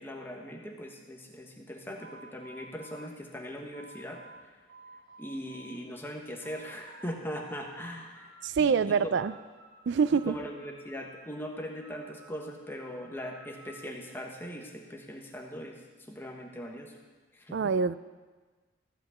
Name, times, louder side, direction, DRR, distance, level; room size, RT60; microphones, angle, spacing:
voice 1, 0.0-4.2 5.2-8.3 8.6-9.1 10.2-16.9 17.3-17.7, equal, 10° left, 1 dB, 1.2 m, -40 dB
sound 1, 2.0-4.4 4.7-5.8 6.2-7.1 7.4-8.5 8.8-9.8 10.1-11.3 11.8-13.9, right 3 dB, 75° right, 3.0 m, -53 dB
voice 2, 8.4-9.3 9.9-10.3 17.5-17.9, right 6 dB, 55° right, 15 dB, 0.3 m, -25 dB
14.5 x 6.1 x 8.1 m, 1.4 s
head